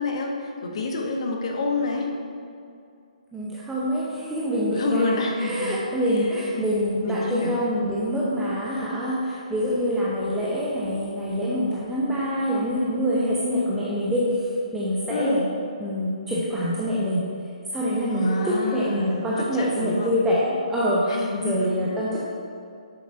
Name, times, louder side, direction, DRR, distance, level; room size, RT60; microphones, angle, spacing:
voice 1, 0.0-2.1 4.8-5.7 6.6-7.6 15.1-15.5 18.1-20.1 21.1-21.9, left 2 dB, 50° left, 1 dB, 1.0 m, -28 dB
voice 2, 3.3-15.4 15.8-17.3 17.7-22.2, equal, 5° right, -7 dB, 0.8 m, -25 dB
8.4 x 6.9 x 2.7 m, 2.5 s
figure-of-eight pair, 130°, 4 cm